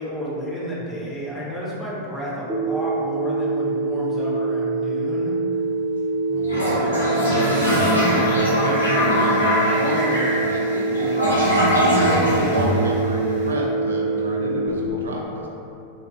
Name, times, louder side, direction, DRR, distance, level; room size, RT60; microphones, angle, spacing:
voice 1, 0.0-5.4, equal, 5° left, -8 dB, 1.0 m, -31 dB
Telephone, 2.5-14.7, right 3 dB, 15° right, 0.7 m, -25 dB
sound 1, 6.3-10.3, right 2 dB, 45° left, 0.4 m, -37 dB
voice 2, 6.3-15.5, right 1 dB, 65° right, -1 dB, 0.4 m, -28 dB
Toilet flush, 6.4-13.4, equal, 90° right, 1.4 m, -22 dB
3.6 x 2.7 x 3.1 m, 2.7 s
figure-of-eight pair, 90°, 0 cm